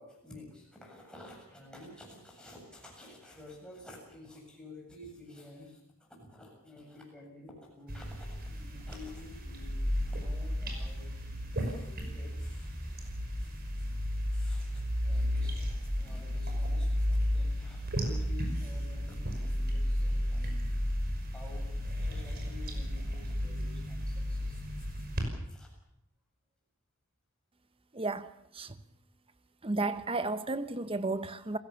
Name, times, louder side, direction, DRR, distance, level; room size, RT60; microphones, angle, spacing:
voice 1, 0.0-13.1 13.4-13.5 14.3-20.8 21.3-25.0 25.5-25.7, left 2 dB, 5° left, 7.7 m, -51 dB
sound 1, 7.9-25.2, equal, 45° right, 5.6 m, -33 dB
voice 2, 27.9-28.7 29.6-31.6, right 2 dB, 25° right, 1.0 m, -33 dB
30.0 x 16.5 x 7.2 m
head